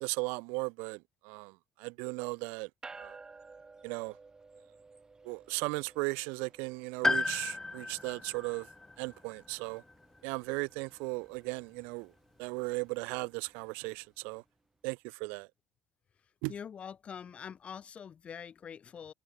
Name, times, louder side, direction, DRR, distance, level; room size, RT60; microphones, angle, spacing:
voice 1, 0.0-3.2 3.8-4.2 5.2-8.7 9.0-9.8 10.2-12.1 12.4-14.4 14.8-15.5 16.4-16.5, right 31 dB, 80° right, 0.6 m, -37 dB
sound 1, 2.8-14.4, right 4 dB, 25° right, 4.1 m, -56 dB
Piano, 7.0-10.9 11.2-11.3 12.4-12.5, left 3 dB, 15° left, 0.5 m, -35 dB
voice 2, 16.5-19.1, left 7 dB, 45° left, 3.6 m, -44 dB
supercardioid pair, 75°, 3 cm